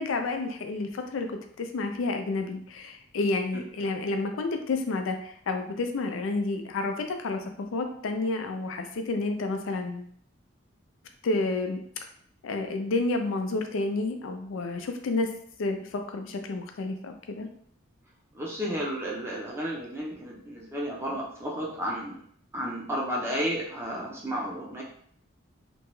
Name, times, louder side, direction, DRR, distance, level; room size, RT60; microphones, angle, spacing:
voice 1, 0.0-10.1 11.2-11.8 12.4-15.3 15.6-17.5, left 3 dB, 75° left, 5 dB, 0.4 m, -30 dB
voice 2, 18.3-22.2 22.5-24.8, equal, 10° right, -4 dB, 0.5 m, -32 dB
2.9 x 2.3 x 2.9 m, 0.63 s
head